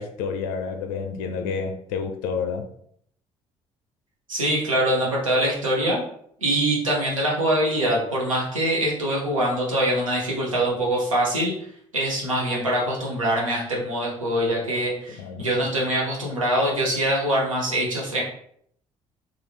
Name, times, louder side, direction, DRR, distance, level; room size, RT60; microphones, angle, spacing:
voice 1, 0.0-2.7 15.2-15.7, left 5 dB, 65° left, 0.4 m, -30 dB
voice 2, 4.3-6.0 6.4-11.5 11.9-18.2, right 1 dB, 85° right, 0.7 m, -23 dB
3.0 x 2.4 x 3.2 m
figure-of-eight pair, 45°, 17 cm